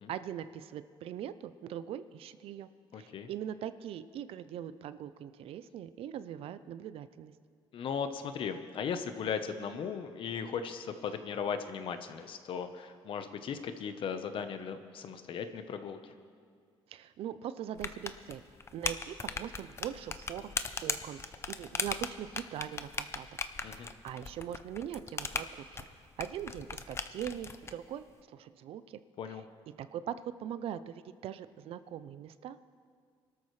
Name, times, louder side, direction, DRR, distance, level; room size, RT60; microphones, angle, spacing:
voice 1, 0.1-7.3 16.9-18.4 18.7-20.5 20.8-29.0 29.3-29.4 29.8-32.6, right 10 dB, 70° right, 13 dB, 0.5 m, -41 dB
voice 2, 2.9-3.3 7.7-16.1 23.6-23.9 29.2-29.4, left 6 dB, 60° left, 8 dB, 1.0 m, -37 dB
sound 1, 17.8-27.7, left 4 dB, 25° left, 0.6 m, -38 dB
24.5 x 13.0 x 3.2 m, 2.1 s
cardioid pair, 115°, 10 cm